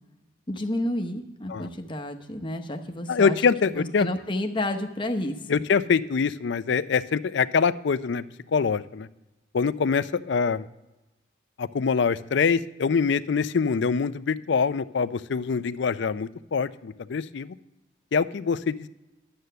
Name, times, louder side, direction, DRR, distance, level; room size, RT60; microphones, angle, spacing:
voice 1, 0.5-3.4 3.7-5.4, left 1 dB, 25° left, 5 dB, 0.9 m, -30 dB
voice 2, 3.1-4.1 5.5-8.2 8.5-9.1 9.5-10.7 11.6-17.6 18.1-18.9, left 5 dB, 65° left, 15 dB, 0.4 m, -24 dB
11.5 x 7.8 x 6.7 m, 1.0 s
head